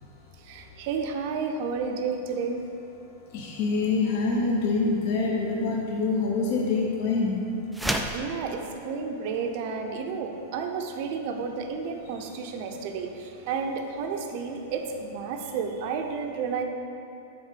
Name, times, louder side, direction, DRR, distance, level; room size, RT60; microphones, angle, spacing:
voice 1, 0.4-2.6 8.1-16.6, right 5 dB, 40° right, 4 dB, 0.7 m, -31 dB
voice 2, 3.3-7.4, left 3 dB, 40° left, -1 dB, 0.8 m, -25 dB
sound 1, 7.7-8.3, right 1 dB, ahead, 0.3 m, -28 dB
8.0 x 3.7 x 6.7 m, 2.7 s
supercardioid pair, 175°, 0 cm